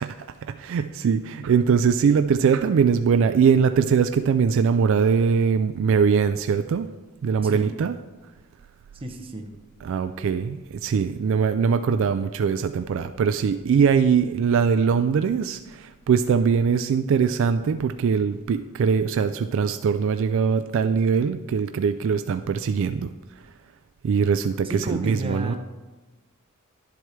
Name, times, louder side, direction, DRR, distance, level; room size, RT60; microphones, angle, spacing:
voice 1, 0.0-6.9 7.2-7.9 9.8-23.1 24.0-25.6, right 6 dB, 65° right, 10 dB, 0.3 m, -22 dB
voice 2, 8.9-9.5 24.6-25.6, right 2 dB, 25° right, 4 dB, 0.9 m, -32 dB
11.5 x 7.6 x 3.2 m, 1.2 s
head